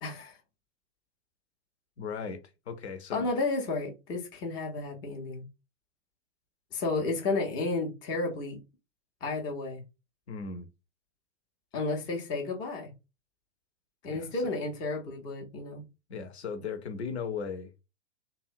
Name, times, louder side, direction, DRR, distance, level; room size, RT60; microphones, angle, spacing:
voice 1, 0.0-0.4 3.1-5.4 6.7-8.6 9.2-9.8 11.7-12.9 14.0-15.8, left 3 dB, 15° left, 0.3 m, -32 dB
voice 2, 2.0-2.4 2.7-3.3 10.3-10.7 14.1-14.4 16.1-17.8, left 6 dB, 65° left, 0.6 m, -37 dB
2.7 x 2.1 x 2.4 m
figure-of-eight pair, 100°, 35 cm